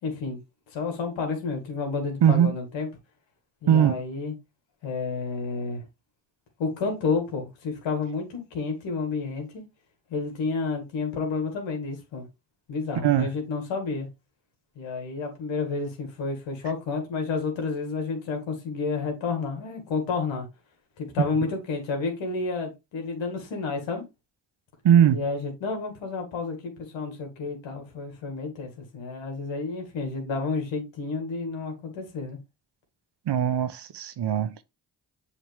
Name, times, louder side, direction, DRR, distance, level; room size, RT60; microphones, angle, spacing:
voice 1, 0.0-0.4 0.7-2.9 3.6-4.3 4.8-5.8 6.6-9.6 10.1-12.2 12.7-14.1 14.8-20.5 21.0-24.0 25.1-32.4, left 4 dB, 90° left, 2.2 m, -30 dB
voice 2, 3.7-4.0 13.0-13.3 24.8-25.2 33.3-34.5, right 9 dB, 65° right, 1.0 m, -20 dB
7.4 x 4.0 x 3.5 m
supercardioid pair, 50°, 44 cm